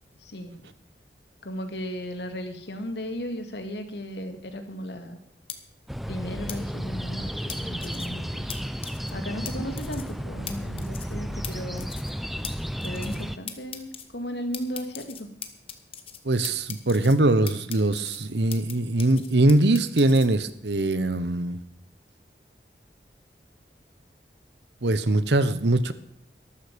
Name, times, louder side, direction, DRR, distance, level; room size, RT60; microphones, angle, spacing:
voice 1, 0.2-0.7 1.4-5.2 6.1-8.5 9.1-11.9 12.8-15.3, equal, 80° left, 7 dB, 2.1 m, -35 dB
sound 1, 5.5-5.6 6.5-6.6 7.5-8.1 8.5-8.6 8.8-9.1 9.5-9.6 9.8-10.1 10.5-10.6 10.8-11.1 11.4-11.5 11.8-12.1 12.4-12.5 12.8-13.2 13.5-14.1 14.5-16.2 16.4-17.2 17.5-18.7 19.0-20.3, left 9 dB, 30° left, 1.2 m, -39 dB
sound 2, 5.9-13.4, equal, ahead, 0.5 m, -33 dB
voice 2, 16.2-21.6 24.8-25.9, right 2 dB, 85° right, 14 dB, 1.0 m, -22 dB
13.0 x 13.0 x 5.2 m, 0.72 s
head